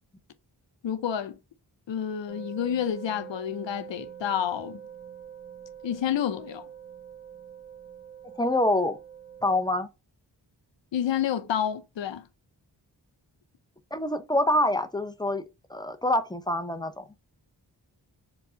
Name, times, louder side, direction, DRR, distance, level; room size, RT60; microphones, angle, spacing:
voice 1, 0.8-1.4 1.9-4.8 5.8-6.7 10.9-12.3, left 9 dB, 80° left, 0.7 m, -29 dB
sound 1, 2.3-9.6, right 8 dB, 20° right, 1.6 m, -45 dB
voice 2, 8.4-9.0 9.4-9.9 13.9-15.4 15.7-17.1, left 1 dB, 10° left, 0.7 m, -26 dB
4.7 x 2.3 x 3.8 m
cardioid pair, 45°, 43 cm